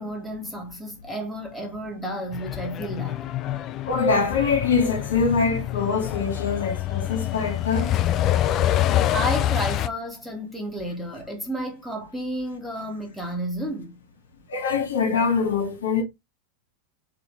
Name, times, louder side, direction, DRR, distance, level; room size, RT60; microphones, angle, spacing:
voice 1, 0.0-3.3 9.1-14.0, equal, 5° left, 1.4 m, -31 dB
Truck, 2.3-9.9, left 12 dB, 35° left, 0.3 m, -26 dB
voice 2, 3.8-8.0 8.3-8.6 8.9-9.1 14.5-16.0, left 5 dB, 65° left, 1.7 m, -24 dB
3.6 x 3.3 x 3.2 m
figure-of-eight pair, 90°, 0 cm